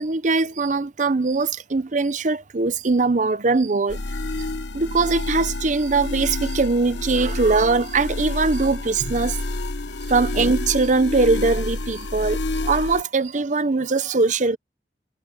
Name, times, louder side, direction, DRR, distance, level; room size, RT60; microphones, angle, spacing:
voice 1, 0.0-4.0 4.7-9.4 10.1-14.6, right 3 dB, 45° right, 0.7 m, -21 dB
sound 1, 3.9-13.0, left 2 dB, 85° left, 1.2 m, -28 dB
head